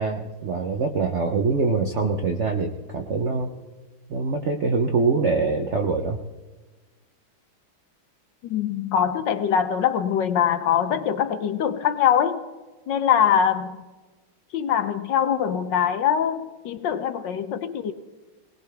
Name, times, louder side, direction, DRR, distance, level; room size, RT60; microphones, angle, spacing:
voice 1, 0.0-3.5 4.1-6.2, right 4 dB, 65° right, 4 dB, 0.7 m, -24 dB
voice 2, 8.4-12.4 12.9-13.8 14.5-17.9, left 8 dB, 70° left, 11 dB, 1.3 m, -23 dB
20.0 x 19.0 x 3.4 m, 1.2 s
omnidirectional pair, 2.2 m